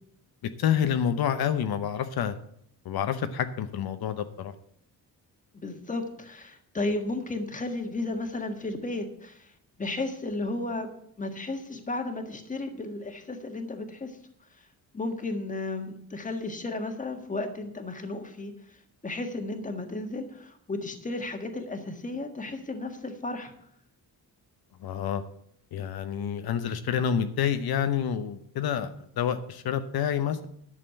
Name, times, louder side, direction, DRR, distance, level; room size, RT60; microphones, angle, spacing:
voice 1, 0.6-2.3 2.8-4.5 24.8-25.2 25.7-30.5, left 8 dB, 75° left, 9 dB, 0.9 m, -28 dB
voice 2, 5.5-9.5 9.8-10.9 11.2-14.2 14.9-18.8 19.0-23.5, left 2 dB, 20° left, 6 dB, 1.6 m, -34 dB
11.0 x 6.7 x 7.7 m, 0.68 s
wide cardioid pair, 140°, 38 cm